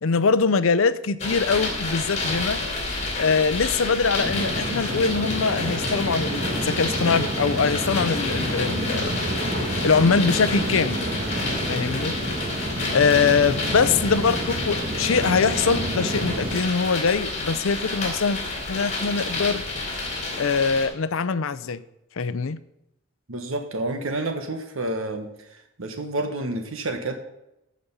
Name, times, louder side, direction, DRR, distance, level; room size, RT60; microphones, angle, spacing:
voice 1, 0.0-2.6 3.2-9.2 9.8-11.0 11.7-12.2 12.9-14.4 14.7-18.4 18.7-19.6 20.4-21.8 22.2-22.6, left 5 dB, 75° left, 14 dB, 0.6 m, -23 dB
sound 1, 1.2-20.9, left 2 dB, 35° left, 3.4 m, -30 dB
sound 2, 4.2-16.6, right 1 dB, 30° right, 1.4 m, -29 dB
voice 2, 23.3-27.2, right 2 dB, 80° right, 5 dB, 1.3 m, -29 dB
14.5 x 5.2 x 5.5 m, 0.86 s
head